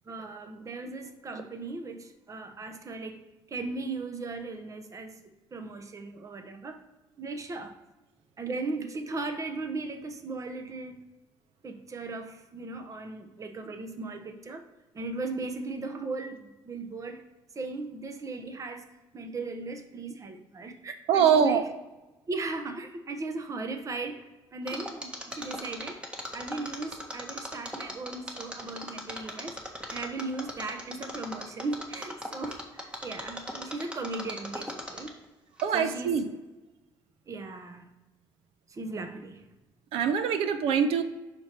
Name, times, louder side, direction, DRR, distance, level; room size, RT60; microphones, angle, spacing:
voice 1, 0.1-3.2 3.5-5.2 5.5-6.8 7.2-7.7 8.4-11.0 11.6-14.6 14.9-17.3 17.5-21.7 22.3-26.0 26.3-29.6 29.9-35.1 35.7-36.2 37.3-37.9 38.7-39.4, right 3 dB, 35° right, 0.9 m, -37 dB
voice 2, 21.1-21.6 35.6-36.2 39.9-41.0, right 7 dB, 85° right, 0.7 m, -23 dB
Mechanisms, 24.7-35.2 35.6-35.7, equal, 10° right, 1.4 m, -38 dB
6.0 x 4.6 x 4.5 m
cardioid pair, 85°, 9 cm